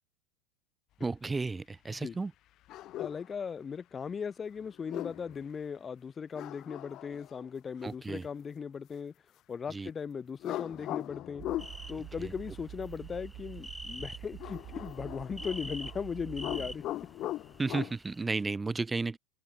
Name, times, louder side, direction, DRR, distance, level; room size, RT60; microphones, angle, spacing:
voice 1, 1.0-2.3 7.8-8.3 9.7-9.9 12.2-12.3 17.6-19.2, right 3 dB, 15° right, 1.6 m, -33 dB
sound 1, 2.7-3.3 4.7-5.4 6.3-7.5 10.4-11.8 14.4-16.0 16.3-17.9, left 14 dB, 50° left, 2.7 m, -39 dB
voice 2, 3.0-9.1 9.5-11.4 11.9-16.8, left 6 dB, 25° left, 3.1 m, -38 dB
sound 2, 11.4-16.8, right 14 dB, 50° right, 2.5 m, -47 dB
sound 3, 11.6-18.2, equal, ahead, 7.2 m, -47 dB
hypercardioid pair, 95°, 0 cm